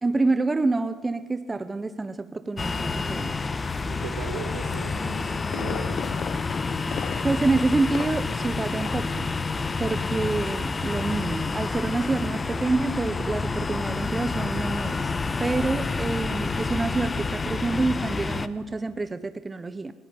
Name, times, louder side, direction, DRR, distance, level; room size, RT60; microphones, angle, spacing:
voice 1, 0.0-3.4 7.2-9.3 9.8-15.1 15.4-19.9, right 3 dB, 25° right, 12 dB, 1.1 m, -27 dB
sound 1, 2.6-18.5, left 4 dB, 25° left, 1.3 m, -29 dB
voice 2, 3.8-6.1, right 5 dB, 80° right, 5 dB, 4.2 m, -38 dB
Fireworks, 5.0-8.5 8.8-9.2 9.5-9.6, left 9 dB, 55° left, 0.7 m, -36 dB
20.5 x 17.5 x 9.1 m, 1.4 s
hypercardioid pair, 65°, 0 cm